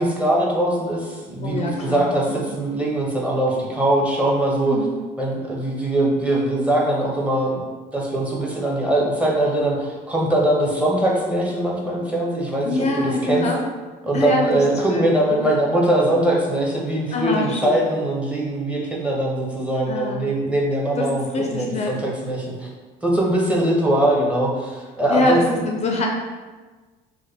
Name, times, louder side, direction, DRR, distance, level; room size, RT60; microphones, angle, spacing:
voice 1, 0.0-4.8 5.2-7.6 7.9-13.5 14.0-22.7 23.0-25.4, right 1 dB, 10° right, -3 dB, 0.7 m, -21 dB
voice 2, 1.4-2.1 2.4-2.5 4.7-4.9 12.6-13.7 14.1-14.6 14.9-15.5 17.1-17.9 19.9-20.3 21.0-22.0 25.1-26.1, left 2 dB, 40° left, 1 dB, 0.4 m, -24 dB
3.1 x 2.1 x 3.4 m, 1.3 s
cardioid pair, 110°, 17 cm